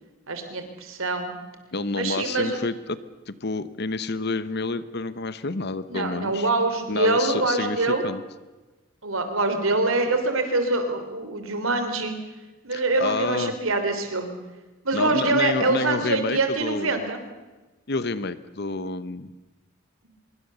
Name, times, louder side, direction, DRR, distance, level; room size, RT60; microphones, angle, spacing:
voice 1, 0.3-1.3 1.9-2.6 5.9-8.0 9.0-12.2 12.6-14.3 14.8-17.2, right 2 dB, 80° right, 7 dB, 3.4 m, -24 dB
voice 2, 1.7-3.0 3.3-6.5 6.9-8.2 12.7-13.5 14.9-17.1 17.9-19.3, left 3 dB, 50° left, 14 dB, 0.9 m, -29 dB
25.0 x 22.5 x 6.9 m, 1.1 s
head